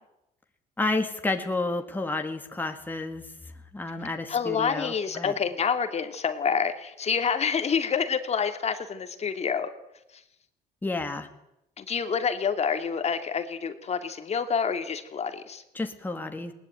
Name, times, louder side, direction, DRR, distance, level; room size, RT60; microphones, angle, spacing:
voice 1, 0.8-3.3 3.7-5.3 10.8-11.3 15.7-16.5, left 2 dB, 10° left, 5 dB, 2.3 m, -30 dB
voice 2, 4.3-9.7 11.8-15.6, left 6 dB, 40° left, 8 dB, 2.5 m, -27 dB
20.5 x 19.5 x 9.1 m, 0.86 s
cardioid pair, 110°, 17 cm